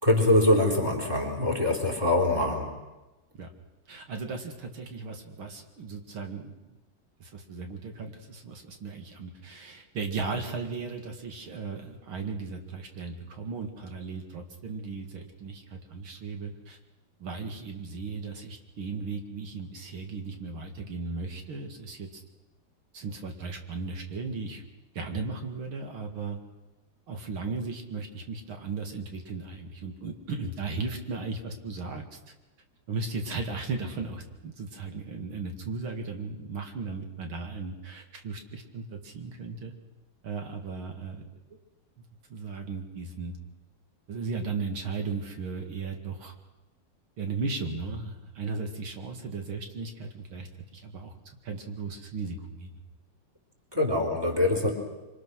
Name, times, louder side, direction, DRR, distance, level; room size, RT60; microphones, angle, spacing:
voice 1, 0.0-2.7 53.7-54.7, left 1 dB, 10° right, 1 dB, 4.4 m, -24 dB
voice 2, 3.9-6.5 7.2-16.8 17.2-22.2 22.9-24.6 24.9-26.4 27.1-32.3 32.9-39.7 40.2-41.3 42.3-43.4 44.1-46.3 47.2-51.1 51.4-52.7, right 4 dB, 90° right, 4 dB, 3.1 m, -36 dB
26.0 x 26.0 x 6.4 m, 1.1 s
omnidirectional pair, 2.2 m